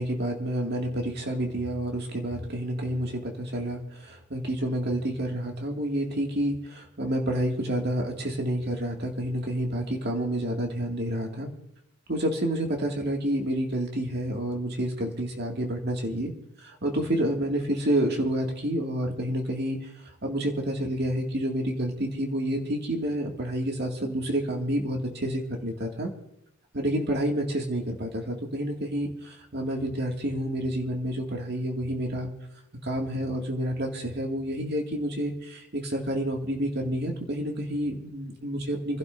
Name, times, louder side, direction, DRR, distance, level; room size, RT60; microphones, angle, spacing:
voice 1, 0.0-3.8 4.1-11.5 12.1-16.3 16.8-19.8 20.2-26.1 26.7-32.3 32.8-39.0, right 1 dB, 50° right, 1 dB, 2.2 m, -29 dB
28.0 x 11.5 x 2.7 m, 0.81 s
head